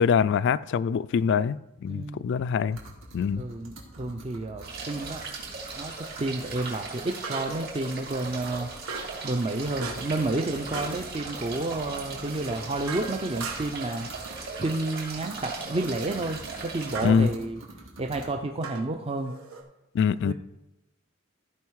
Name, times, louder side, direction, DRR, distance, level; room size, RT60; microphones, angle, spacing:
voice 1, 0.0-2.8 3.1-3.4 17.0-17.3 19.9-20.3, left 6 dB, 60° left, 0.3 m, -24 dB
voice 2, 1.9-2.3 3.4-5.2 5.8-8.7 9.2-14.1 14.6-17.6 18.0-19.3 20.2-20.3, right 2 dB, 30° right, 0.5 m, -30 dB
sound 1, 1.9-2.0 2.7-5.7 6.2-6.6 7.0-7.1 7.6-7.7 8.1-8.7 8.9-9.0 9.3-14.4 14.7-18.2, right 2 dB, 65° right, 2.3 m, -46 dB
sound 2, 3.5-3.7 7.2-7.8 8.9-9.2 9.8-10.2 10.7-11.0 12.2-13.9 15.3-15.7 16.9-17.2 18.6-19.6, right 4 dB, 90° right, 1.3 m, -38 dB
sound 3, 4.6-17.0, right 4 dB, 50° right, 3.0 m, -38 dB
14.0 x 5.4 x 4.7 m
head